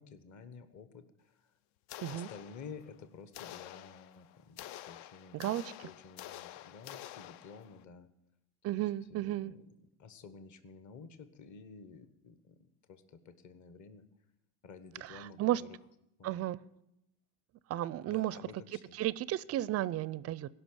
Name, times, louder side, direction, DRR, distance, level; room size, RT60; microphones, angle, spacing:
voice 1, 0.0-1.3 2.1-5.5 5.8-8.1 8.7-9.7 10.0-12.6 12.9-14.0 14.6-15.8 16.2-16.4 18.0-19.0, left 5 dB, 40° left, 12 dB, 1.3 m, -52 dB
sound 1, 1.9-2.9 3.3-7.8, left 13 dB, 65° left, 0.6 m, -48 dB
voice 2, 5.3-5.7 8.6-9.5 15.0-15.6 16.2-16.6 17.7-18.4 18.9-20.5, right 14 dB, 35° right, 20 dB, 0.4 m, -33 dB
16.5 x 6.0 x 8.8 m, 0.84 s
supercardioid pair, 105°, 45 cm